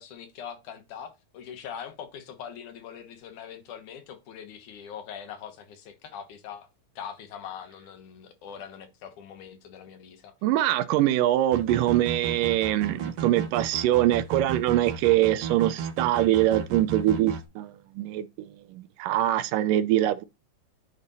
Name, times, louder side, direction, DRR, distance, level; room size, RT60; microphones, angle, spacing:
voice 1, 0.0-6.7 7.0-10.4, left 8 dB, 70° left, 2.4 m, -42 dB
voice 2, 10.4-20.2, right 14 dB, 80° right, 2.2 m, -24 dB
sound 1, 11.5-17.4, right 6 dB, 60° right, 1.8 m, -34 dB
9.2 x 4.0 x 4.0 m
omnidirectional pair, 3.9 m